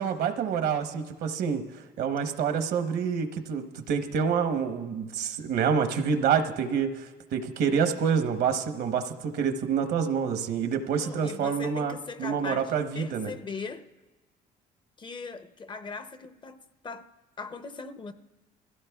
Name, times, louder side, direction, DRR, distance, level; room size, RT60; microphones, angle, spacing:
voice 1, 0.0-1.6 2.0-13.3, right 6 dB, 70° right, 1.0 m, -27 dB
voice 2, 11.0-13.8 15.0-16.6 16.8-17.1 17.4-18.1, left 4 dB, 30° left, 0.6 m, -39 dB
22.0 x 16.0 x 2.3 m
cardioid pair, 110°, 17 cm